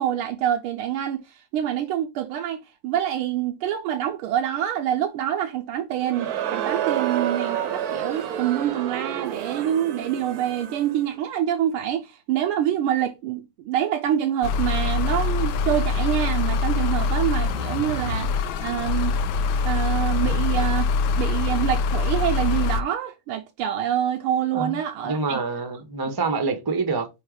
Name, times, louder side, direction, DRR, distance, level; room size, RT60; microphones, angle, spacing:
voice 1, 0.0-19.2 19.6-25.4, right 11 dB, 85° right, 1.6 m, -26 dB
Crowd, 6.0-11.0, right 10 dB, 60° right, 1.0 m, -29 dB
sound 1, 14.4-22.8, left 4 dB, 75° left, 1.4 m, -24 dB
voice 2, 25.0-27.1, right 4 dB, 30° right, 0.4 m, -26 dB
4.9 x 4.3 x 4.9 m
omnidirectional pair, 2.4 m